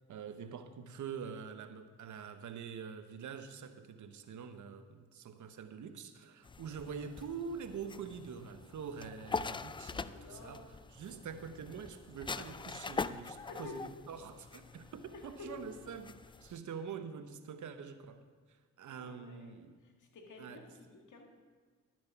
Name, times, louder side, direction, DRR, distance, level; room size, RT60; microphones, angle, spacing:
voice 1, 0.1-10.6 10.9-18.3 18.8-19.7 20.4-20.6, right 6 dB, 65° right, 9 dB, 0.9 m, -45 dB
sound 1, 6.4-16.6, left 4 dB, 15° left, 0.3 m, -43 dB
voice 2, 9.8-10.7 13.3-13.8 15.0-15.7 18.9-21.3, left 3 dB, 70° left, 2 dB, 2.1 m, -51 dB
12.0 x 7.6 x 5.7 m, 1.5 s
supercardioid pair, 55°, 32 cm